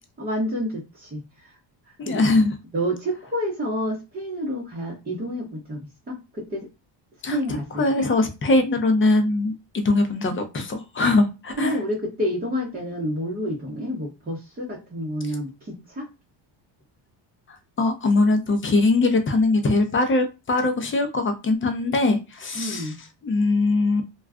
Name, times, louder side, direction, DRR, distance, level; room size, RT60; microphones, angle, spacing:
voice 1, 0.2-1.6 1.9-2.2 2.7-6.7 7.3-8.1 11.6-16.1 22.5-23.0, equal, 20° right, -4 dB, 0.8 m, -29 dB
voice 2, 2.0-2.5 7.2-7.4 7.8-11.8 17.8-22.9 23.2-24.0, left 2 dB, 25° left, 7 dB, 0.6 m, -21 dB
2.3 x 2.3 x 3.5 m, 0.27 s
cardioid pair, 110°, 49 cm